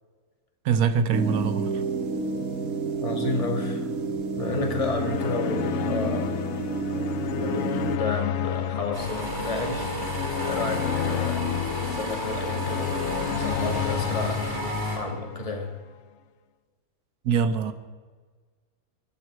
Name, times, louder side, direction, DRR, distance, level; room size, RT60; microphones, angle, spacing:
voice 1, 0.6-1.8 17.2-17.7, right 6 dB, 85° right, 10 dB, 1.4 m, -23 dB
sound 1, 1.1-8.0, right 4 dB, 70° right, 1.6 m, -30 dB
voice 2, 3.0-3.9 4.4-6.4 7.3-12.9 13.3-14.6 14.9-15.7, left 2 dB, 25° left, 3 dB, 1.6 m, -32 dB
sound 2, 4.4-15.7, left 10 dB, 65° left, 0.7 m, -31 dB
sound 3, 8.9-15.0, equal, 15° right, 3.1 m, -31 dB
21.0 x 11.5 x 4.6 m, 1.5 s
omnidirectional pair, 1.6 m